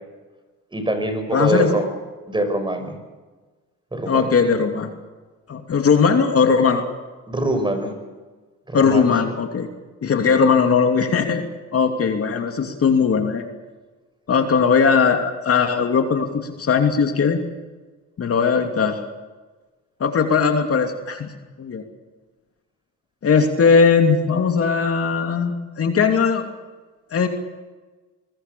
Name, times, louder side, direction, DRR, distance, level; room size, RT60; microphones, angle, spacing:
voice 1, 0.7-1.8 2.3-2.9 3.9-4.2 7.3-7.9 8.7-9.1, right 1 dB, 15° right, 7 dB, 6.2 m, -23 dB
voice 2, 1.3-1.7 4.1-4.9 5.5-6.8 8.7-9.7 10.0-11.4 11.7-13.4 14.3-17.4 18.2-19.0 20.0-21.3 21.6-21.8 23.2-26.4 27.1-27.3, left 5 dB, 50° left, 5 dB, 2.8 m, -19 dB
24.0 x 21.0 x 7.0 m, 1.3 s
cardioid pair, 90°, 30 cm